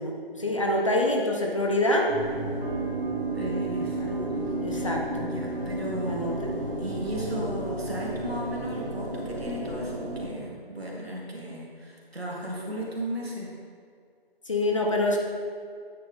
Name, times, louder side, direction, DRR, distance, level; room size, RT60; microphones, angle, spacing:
voice 1, 0.0-2.1 4.0-4.3 4.6-5.3 6.0-6.5 14.5-15.2, left 1 dB, 30° left, 0 dB, 0.7 m, -26 dB
sound 1, 2.1-10.3, right 2 dB, 60° right, 2.0 m, -32 dB
voice 2, 3.4-4.0 4.3-4.9 5.2-13.5, equal, 80° right, -3 dB, 2.1 m, -35 dB
9.2 x 6.0 x 3.4 m, 2.2 s
figure-of-eight pair, 150°, 30 cm